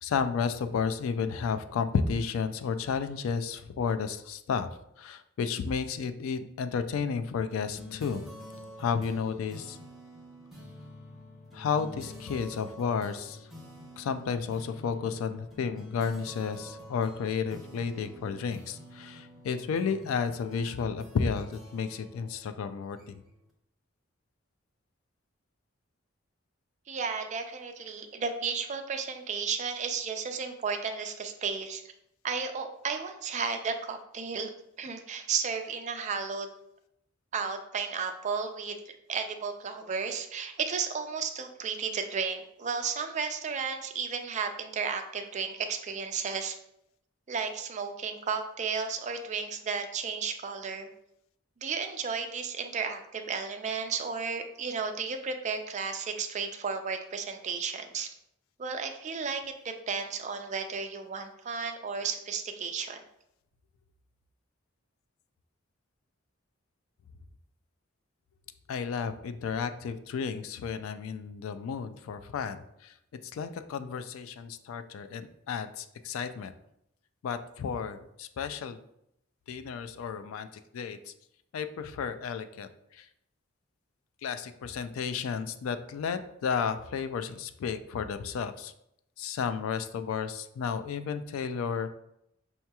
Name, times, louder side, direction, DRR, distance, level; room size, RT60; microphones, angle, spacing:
voice 1, 0.0-4.7 5.0-8.2 8.8-9.8 11.5-13.4 14.0-23.2 68.7-72.9 73.3-76.5 77.2-78.8 79.5-80.5 80.7-81.1 81.5-83.1 84.2-88.7 89.2-91.9, left 6 dB, 75° left, 10 dB, 0.3 m, -32 dB
sound 1, 7.5-23.4, left 1 dB, ahead, 0.7 m, -48 dB
voice 2, 26.9-31.8 32.2-34.5 34.8-36.5 37.3-46.6 47.3-50.9 51.6-58.1 58.6-63.0, right 5 dB, 35° right, 6 dB, 0.4 m, -33 dB
5.5 x 2.9 x 2.2 m, 0.77 s
head